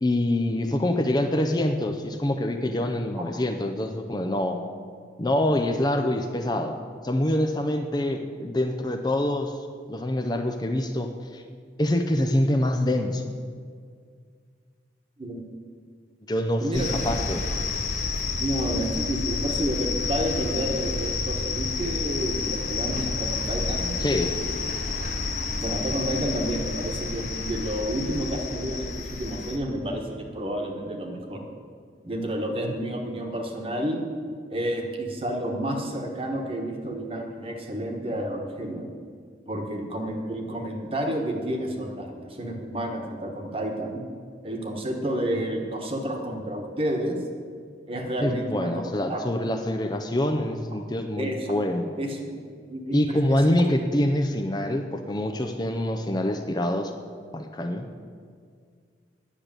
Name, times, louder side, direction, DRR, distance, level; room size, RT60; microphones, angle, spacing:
voice 1, 0.0-4.6 5.2-6.8 7.0-9.6 9.9-11.4 11.8-13.3 16.3-17.4 24.0-24.3 48.2-52.0 52.9-56.9 57.3-57.9, left 1 dB, 25° left, 5 dB, 0.6 m, -25 dB
voice 2, 16.6-17.0 18.4-23.9 25.6-31.5 32.0-34.0 34.5-38.9 39.5-44.0 44.4-47.2 47.9-48.7 49.1-49.2 51.2-51.6 52.0-52.4 52.7-53.5, right 1 dB, 30° right, 2 dB, 1.4 m, -30 dB
sound 1, 16.7-29.6, left 4 dB, 45° left, 1.1 m, -29 dB
10.0 x 6.6 x 8.9 m, 2.1 s
head